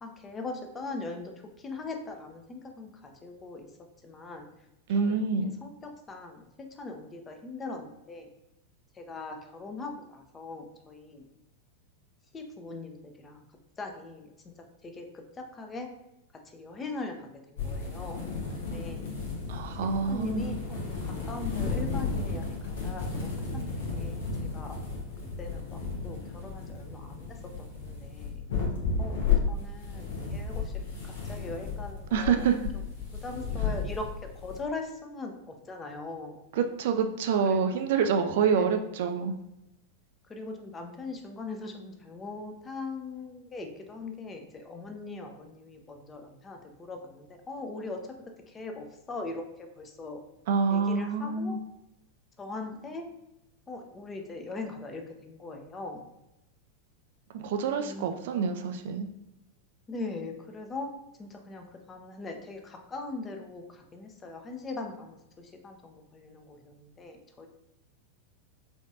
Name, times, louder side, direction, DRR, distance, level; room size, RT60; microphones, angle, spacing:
voice 1, 0.0-3.7 4.0-4.5 4.9-5.2 5.6-8.3 8.9-11.3 12.3-13.4 13.8-14.5 14.8-15.9 16.4-19.1 19.9-24.8 25.4-28.5 29.0-29.2 29.5-32.5 33.2-36.4 37.4-37.9 38.4-38.8 40.3-48.2 48.5-50.2 50.7-51.6 52.4-53.1 53.7-56.0 57.8-58.6 59.9-60.9 61.2-67.5, left 3 dB, 20° left, 4 dB, 0.5 m, -41 dB
voice 2, 4.9-5.5 19.5-20.6 32.1-32.6 36.5-39.3 50.5-51.6 57.3-59.1, right 6 dB, 55° right, 6 dB, 0.3 m, -27 dB
sound 1, 17.6-34.6, left 5 dB, 60° left, 0.9 m, -33 dB
4.6 x 2.6 x 2.6 m, 0.89 s
figure-of-eight pair, 90°, 0 cm